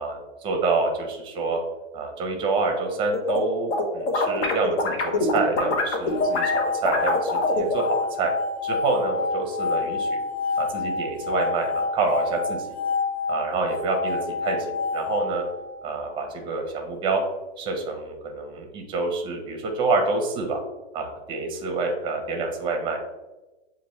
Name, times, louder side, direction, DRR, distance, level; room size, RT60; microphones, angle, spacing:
voice 1, 0.0-1.6 1.9-8.3 8.6-10.2 10.6-12.7 13.3-15.4 15.8-17.2 17.6-20.6 20.9-23.0, right 3 dB, 15° right, 3 dB, 0.6 m, -27 dB
sound 1, 2.8-3.4 3.7-7.9, left 2 dB, 75° left, 1.1 m, -24 dB
sound 2, 6.1-16.2, left 4 dB, 45° left, 0.4 m, -28 dB
6.7 x 2.5 x 3.1 m, 1.1 s
supercardioid pair, 150°, 34 cm